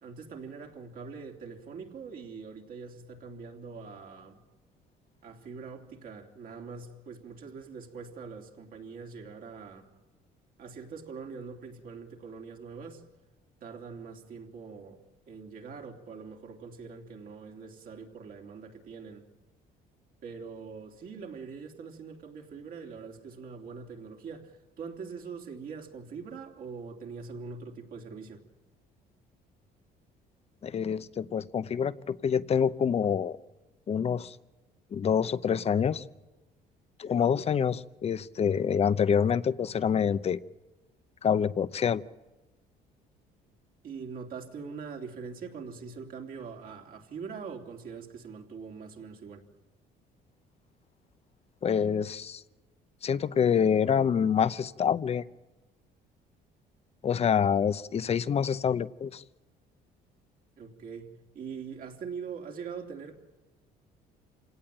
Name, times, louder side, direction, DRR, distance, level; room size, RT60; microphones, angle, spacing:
voice 1, 0.0-4.4 5.2-9.9 10.6-13.0 13.6-19.3 20.2-28.4 43.8-49.4 60.6-63.2, right 5 dB, 60° right, 1 dB, 3.3 m, -43 dB
voice 2, 30.6-33.4 33.9-34.4 34.9-36.0 37.0-40.4 41.2-42.0 51.6-52.4 53.0-55.2 57.0-59.2, left 7 dB, 35° left, 16 dB, 0.7 m, -26 dB
27.5 x 17.5 x 9.0 m, 1.2 s
cardioid pair, 110°, 17 cm